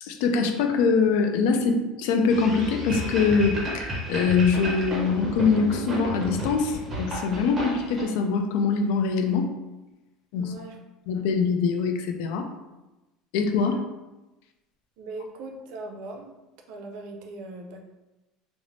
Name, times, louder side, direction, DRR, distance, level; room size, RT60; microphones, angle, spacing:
voice 1, 0.0-9.5 10.3-10.5 11.1-12.4 13.3-13.8, left 5 dB, 75° left, 5 dB, 0.3 m, -23 dB
sound 1, 2.3-6.4, right 1 dB, 30° left, 1.3 m, -41 dB
sound 2, 2.3-8.0, right 1 dB, 20° right, 0.6 m, -32 dB
voice 2, 10.4-10.8 13.6-13.8 15.0-16.3 16.7-17.8, right 2 dB, 65° right, 2 dB, 0.4 m, -39 dB
3.1 x 2.0 x 2.5 m, 1.0 s
cardioid pair, 155°, 0 cm